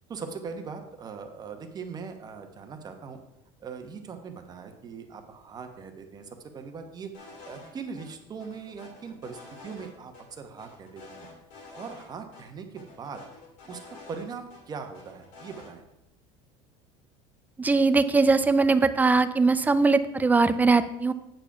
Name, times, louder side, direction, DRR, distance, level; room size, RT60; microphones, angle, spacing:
voice 1, 0.1-3.2 3.6-7.1 7.4-11.3 11.7-13.2 13.7-15.8, right 5 dB, 30° right, 5 dB, 1.0 m, -40 dB
sound 1, 7.1-7.7 8.0-8.1 8.4-9.9 10.1-10.2 10.6-12.1 12.3-12.4 12.8-14.6 14.9-15.7, left 3 dB, 60° left, 2.6 m, -48 dB
voice 2, 17.6-21.1, right 3 dB, 10° right, 12 dB, 0.4 m, -21 dB
8.8 x 4.8 x 5.9 m, 0.87 s
cardioid pair, 140°, 14 cm